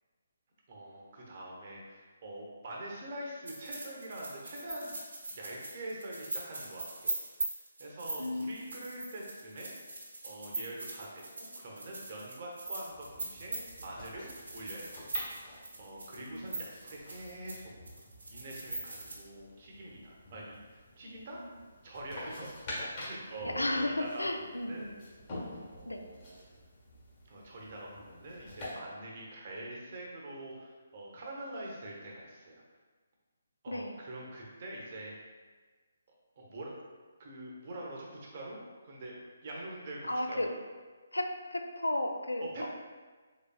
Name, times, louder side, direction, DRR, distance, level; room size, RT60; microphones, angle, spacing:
voice 1, 0.7-4.9 5.3-7.2 7.8-9.7 10.2-15.0 15.3-15.4 15.8-17.7 18.3-21.4 21.8-22.6 22.9-24.9 25.6-26.3 27.3-32.6 33.6-35.1 36.4-36.8 37.2-38.6 38.8-39.2 39.4-40.5 42.4-42.7, right 1 dB, 40° right, -2 dB, 0.8 m, -44 dB
sound 1, 3.4-17.6 17.8-19.2, right 2 dB, 65° right, 1.0 m, -40 dB
voice 2, 8.2-8.7 16.2-16.5 21.3-21.4 23.4-25.0 25.9-26.0 33.7-33.9 40.1-40.5 41.1-42.7, left 1 dB, 85° left, 5 dB, 0.4 m, -34 dB
sound 2, 12.9-28.7, left 1 dB, 35° left, 1.2 m, -48 dB
4.1 x 3.2 x 2.3 m, 1.4 s
figure-of-eight pair, 140°, 0 cm